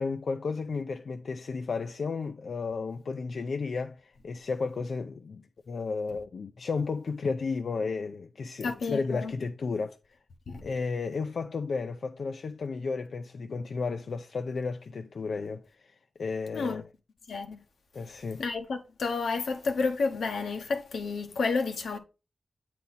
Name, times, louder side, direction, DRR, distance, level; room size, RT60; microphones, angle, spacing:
voice 1, 0.0-10.0 10.6-15.9 16.2-16.8 17.9-18.4, left 4 dB, 70° left, 0.4 m, -33 dB
voice 2, 8.6-9.3 10.5-10.6 16.5-16.8 17.3-17.6 18.4-22.0, left 4 dB, 90° left, 1.0 m, -30 dB
8.5 x 4.1 x 4.1 m
wide cardioid pair, 80°, 0 cm